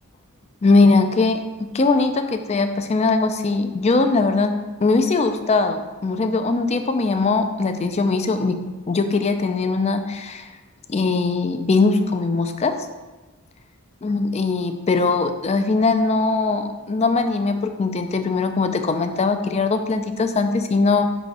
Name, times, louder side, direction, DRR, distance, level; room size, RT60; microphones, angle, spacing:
voice 1, 0.6-1.4 1.7-4.5 4.8-8.6 8.9-10.5 10.9-12.7 14.0-21.1, left 3 dB, 30° left, 7 dB, 0.4 m, -20 dB
5.6 x 4.0 x 4.7 m, 1.2 s
head